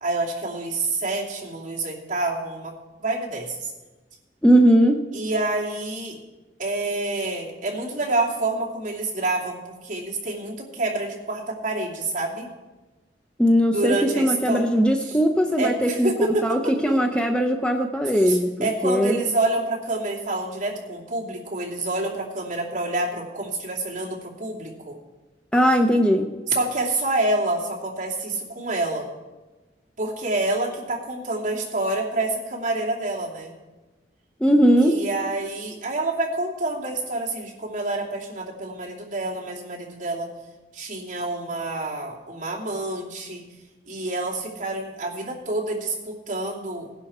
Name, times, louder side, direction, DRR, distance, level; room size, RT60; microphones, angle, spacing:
voice 1, 0.0-2.7 3.0-3.7 5.1-6.2 6.6-12.5 13.7-14.7 15.0-15.2 15.6-17.0 18.2-25.0 26.5-29.1 30.0-33.5 34.8-40.3 40.7-43.4 43.9-46.9, right 2 dB, 45° right, -3 dB, 2.7 m, -27 dB
voice 2, 4.4-5.0 13.4-16.1 16.4-19.2 25.5-26.3 34.4-35.0, equal, 5° left, 4 dB, 0.7 m, -19 dB
18.5 x 10.5 x 4.3 m, 1.2 s
head